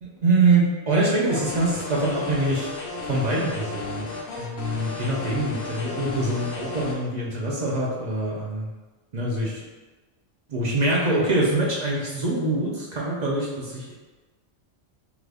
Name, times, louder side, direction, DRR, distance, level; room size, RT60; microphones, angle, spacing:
voice 1, 0.0-2.7 3.1-4.1 4.4-8.7 9.1-9.6 10.5-13.9, right 2 dB, 60° right, -5 dB, 0.4 m, -24 dB
sound 1, 1.3-6.9, left 4 dB, 80° left, 1.1 m, -34 dB
2.8 x 2.4 x 3.3 m, 1.3 s
omnidirectional pair, 1.4 m